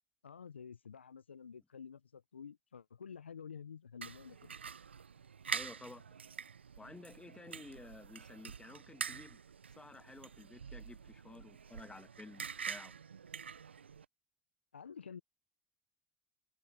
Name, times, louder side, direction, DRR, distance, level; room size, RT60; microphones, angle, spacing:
voice 1, 0.2-4.5 14.7-15.2, left 6 dB, 90° left, 0.7 m, -50 dB
sound 1, 4.0-14.0, right 6 dB, 90° right, 0.7 m, -46 dB
voice 2, 5.5-6.1 6.8-9.4 9.8-13.0, left 2 dB, 15° left, 1.4 m, -53 dB
figure-of-eight pair, 60°, 6 cm